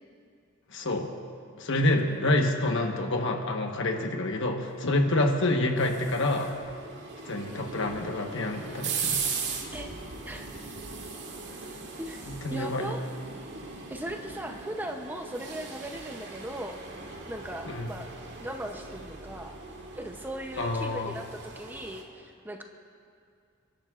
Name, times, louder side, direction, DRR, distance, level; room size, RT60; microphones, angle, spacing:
voice 1, 0.7-1.1 1.6-6.5 7.2-9.2 12.3-12.9 17.7-17.9 20.6-21.1, left 2 dB, 60° left, 3 dB, 1.2 m, -27 dB
voice 2, 2.1-2.8 5.1-5.3 9.7-9.9 10.2-10.5 12.0-13.0 13.9-16.8 17.3-18.1 18.4-19.6 19.9-22.6, right 1 dB, 10° right, 4 dB, 0.7 m, -38 dB
sound 1, 5.4-22.0, right 5 dB, 60° right, 1.7 m, -39 dB
29.0 x 11.5 x 2.5 m, 2.4 s
head